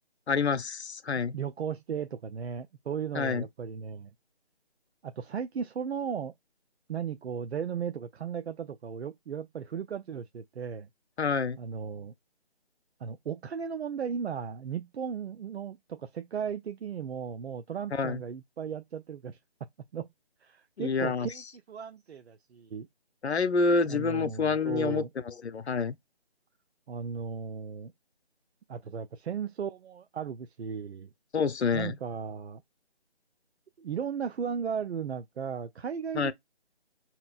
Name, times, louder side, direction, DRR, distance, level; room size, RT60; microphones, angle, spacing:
voice 1, 0.3-1.4 3.1-3.5 11.2-11.6 17.9-18.2 20.8-21.3 23.2-26.0 31.3-32.0 36.1-36.3, left 5 dB, 90° left, 0.7 m, -28 dB
voice 2, 1.3-4.1 5.0-6.3 6.9-10.9 11.6-12.1 13.0-19.4 19.9-20.1 20.4-22.9 23.9-25.1 26.9-27.9 28.7-31.1 31.7-32.6 33.8-36.3, right 7 dB, 80° right, 0.5 m, -36 dB
4.7 x 2.9 x 2.3 m
figure-of-eight pair, 170°, 32 cm